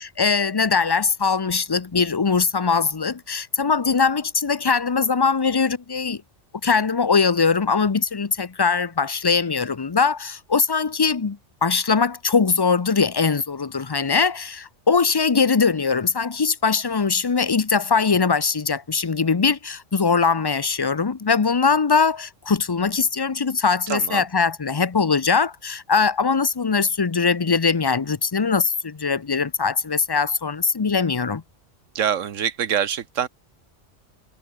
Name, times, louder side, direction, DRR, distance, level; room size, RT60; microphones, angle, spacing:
voice 1, 0.2-6.2 6.6-31.4, left 5 dB, 30° left, 0.5 m, -21 dB
voice 2, 23.9-24.3 31.9-33.3, right 8 dB, 85° right, 1.4 m, -25 dB
omnidirectional pair, 1.3 m